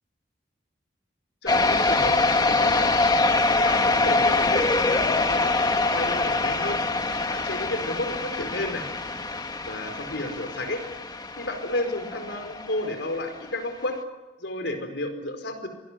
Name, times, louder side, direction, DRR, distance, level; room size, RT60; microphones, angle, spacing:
voice 1, 1.4-3.0 3.5-6.8 7.3-8.8 9.7-10.8 11.4-14.0 14.4-15.7, left 1 dB, 70° left, 7 dB, 4.8 m, -32 dB
sound 1, 1.5-12.9, left 3 dB, 20° left, 1.5 m, -24 dB
27.0 x 19.5 x 8.2 m, 1.2 s
head